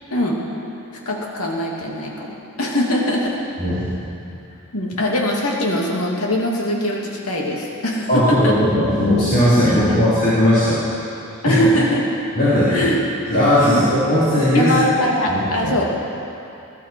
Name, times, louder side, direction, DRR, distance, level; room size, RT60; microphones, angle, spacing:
voice 1, 0.1-0.4 1.1-3.4 4.7-8.6 9.6-10.0 11.4-12.1 12.7-13.0 13.6-13.8 14.5-15.9, left 1 dB, 80° left, -2 dB, 2.4 m, -22 dB
voice 2, 3.6-3.9 8.1-10.8 11.4-11.6 12.4-12.9 13.3-14.8 15.3-15.7, equal, 45° left, -12 dB, 3.6 m, -17 dB
19.5 x 12.5 x 4.5 m, 2.8 s
head